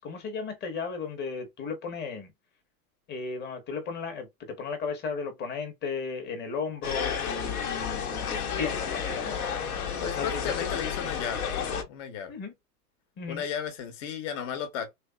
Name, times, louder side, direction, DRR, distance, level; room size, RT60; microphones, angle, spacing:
voice 1, 0.0-2.3 3.1-9.4 10.0-10.3 10.6-10.7 12.3-12.5 13.2-13.4, left 5 dB, 20° left, 1.0 m, -35 dB
sound 1, 6.8-11.8, left 7 dB, 70° left, 1.1 m, -31 dB
voice 2, 10.0-11.5 11.9-12.3 13.3-14.9, left 8 dB, 50° left, 1.2 m, -34 dB
3.3 x 3.2 x 2.2 m
hypercardioid pair, 105°, 46 cm